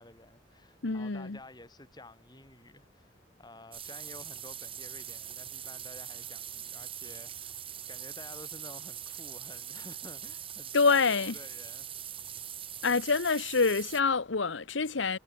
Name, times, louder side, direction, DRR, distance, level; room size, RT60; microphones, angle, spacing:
voice 1, 0.0-7.6 7.9-11.9, left 2 dB, 20° left, 4.7 m, -51 dB
voice 2, 0.8-1.4 10.7-11.3 12.8-15.2, left 4 dB, 80° left, 1.1 m, -26 dB
sound 1, 3.7-14.0, right 10 dB, 30° right, 2.2 m, -42 dB
head